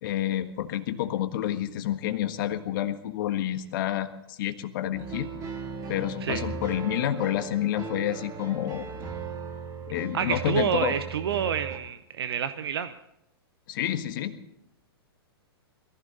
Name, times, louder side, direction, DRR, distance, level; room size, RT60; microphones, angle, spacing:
voice 1, 0.0-5.3 5.9-8.9 9.9-11.0 13.7-14.4, left 12 dB, 50° left, 8 dB, 1.6 m, -29 dB
sound 1, 4.9-11.8, right 5 dB, 25° right, 2.6 m, -37 dB
voice 2, 10.1-12.9, right 8 dB, 70° right, 12 dB, 0.8 m, -28 dB
21.5 x 15.0 x 3.9 m, 0.84 s
hypercardioid pair, 115°, 13 cm